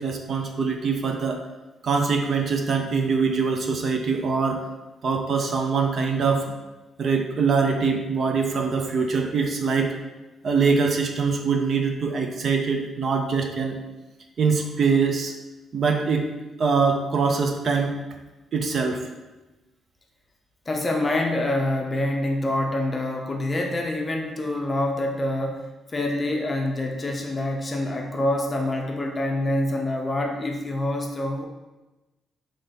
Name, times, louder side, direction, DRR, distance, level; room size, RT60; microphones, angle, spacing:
voice 1, 0.0-1.4 1.8-4.7 5.0-6.5 7.0-9.9 10.4-13.8 14.4-15.3 15.7-16.2 16.6-18.0 18.5-19.0, right 5 dB, 45° right, 3 dB, 0.5 m, -23 dB
voice 2, 20.7-31.4, left 1 dB, 25° left, 1 dB, 0.6 m, -26 dB
3.8 x 3.2 x 4.0 m, 1.1 s
cardioid pair, 130°, 0 cm